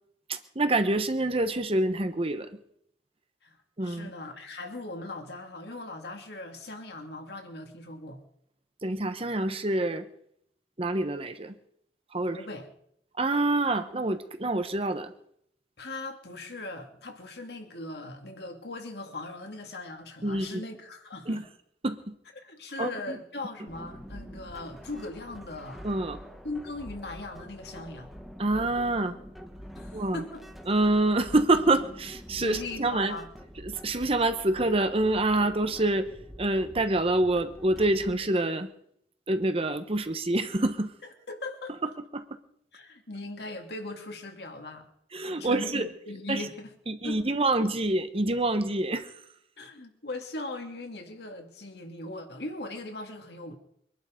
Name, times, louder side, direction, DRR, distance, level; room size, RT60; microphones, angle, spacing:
voice 1, 0.3-2.5 3.8-4.1 8.8-10.0 10.8-11.5 12.1-12.4 13.2-15.1 20.2-20.6 21.3-21.4 21.8-22.1 22.8-23.2 25.8-26.2 28.4-29.2 29.9-30.2 30.7-33.2 33.6-36.1 36.4-38.7 39.3-40.9 42.1-42.2 45.1-45.9 46.3-46.4 46.9-49.1, right 2 dB, 30° right, 9 dB, 1.0 m, -26 dB
voice 2, 3.8-8.2 12.3-12.7 15.8-21.4 22.4-25.9 26.4-28.2 29.8-30.4 32.3-33.3 41.3-41.9 42.7-44.9 45.3-47.4 49.6-53.6, left 2 dB, 60° left, 4 dB, 2.4 m, -39 dB
sound 1, 23.7-38.1, equal, ahead, 1.5 m, -46 dB
23.5 x 11.5 x 5.1 m, 0.71 s
head